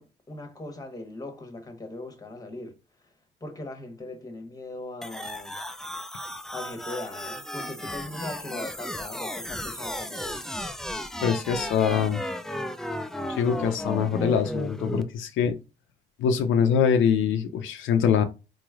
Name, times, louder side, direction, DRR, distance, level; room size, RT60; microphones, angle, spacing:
voice 1, 0.0-2.8 3.4-5.6 6.5-10.4, left 2 dB, 20° left, 1.1 m, -39 dB
sound 1, 5.0-15.0, left 1 dB, ahead, 0.3 m, -34 dB
voice 2, 11.2-12.2 13.3-15.6 16.2-18.2, left 7 dB, 80° left, 0.5 m, -23 dB
4.0 x 3.0 x 2.4 m
cardioid pair, 90°, 20 cm